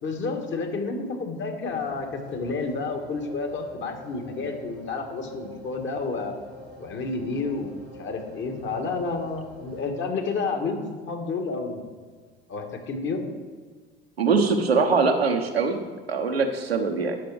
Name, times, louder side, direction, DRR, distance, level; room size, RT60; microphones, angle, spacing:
voice 1, 0.0-6.4 6.8-10.8 11.0-11.8 12.5-13.2, left 4 dB, 40° left, 4 dB, 1.7 m, -30 dB
sound 1, 1.7-9.9, equal, 90° left, 2.8 m, -46 dB
voice 2, 14.2-15.8 16.1-17.2, right 4 dB, 85° right, 4 dB, 0.9 m, -22 dB
10.5 x 6.7 x 4.8 m, 1.5 s
figure-of-eight pair, 65°, 30 cm